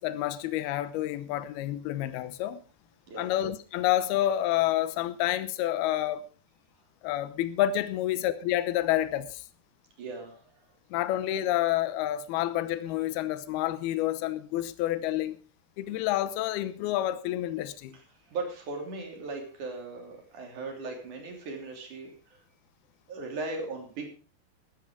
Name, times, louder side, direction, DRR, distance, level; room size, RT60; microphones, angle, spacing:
voice 1, 0.0-2.6 3.2-6.3 7.0-9.5 10.9-15.4 15.8-17.9, left 13 dB, 75° left, 2.8 m, -29 dB
voice 2, 10.0-10.6 17.9-18.0 18.3-22.4 23.1-24.1, right 3 dB, 50° right, 4.5 m, -38 dB
14.5 x 13.5 x 3.8 m
omnidirectional pair, 4.7 m